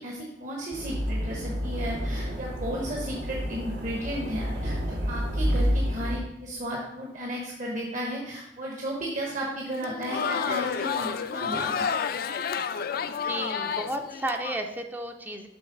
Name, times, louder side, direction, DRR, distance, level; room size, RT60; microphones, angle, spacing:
voice 1, 0.0-11.9, equal, 45° right, -1 dB, 0.9 m, -34 dB
sound 1, 0.7-6.2, equal, 75° right, 0.8 m, -29 dB
Crowd, 9.7-14.6, left 6 dB, 55° left, 0.3 m, -30 dB
voice 2, 13.1-15.5, right 1 dB, 10° right, 5 dB, 0.4 m, -33 dB
7.0 x 3.3 x 5.1 m, 0.88 s
head